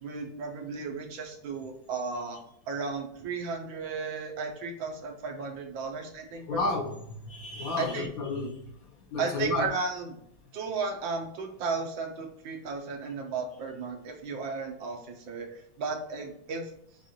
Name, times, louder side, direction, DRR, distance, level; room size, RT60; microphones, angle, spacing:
voice 1, 0.0-6.8 7.8-8.1 9.2-10.2 10.5-16.7, right 4 dB, 90° right, 3 dB, 1.7 m, -34 dB
voice 2, 6.5-6.9 7.3-8.6 9.1-9.7, left 3 dB, 60° left, 2 dB, 1.1 m, -31 dB
6.6 x 2.4 x 2.9 m, 0.73 s
omnidirectional pair, 2.0 m